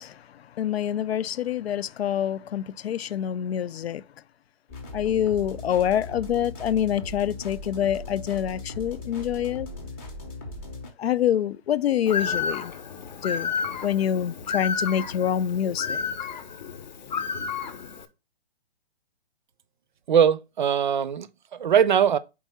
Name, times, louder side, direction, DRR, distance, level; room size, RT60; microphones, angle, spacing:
voice 1, 0.0-4.0 4.9-9.7 11.0-12.7 13.2-13.5 13.8-16.0, left 10 dB, 85° left, 0.5 m, -26 dB
sound 1, 4.7-10.9, left 2 dB, 15° left, 0.6 m, -38 dB
Bird, 12.1-18.0, left 5 dB, 50° left, 0.8 m, -31 dB
voice 2, 20.1-22.2, right 8 dB, 50° right, 0.5 m, -21 dB
4.7 x 3.7 x 5.4 m
hypercardioid pair, 170°, 30 cm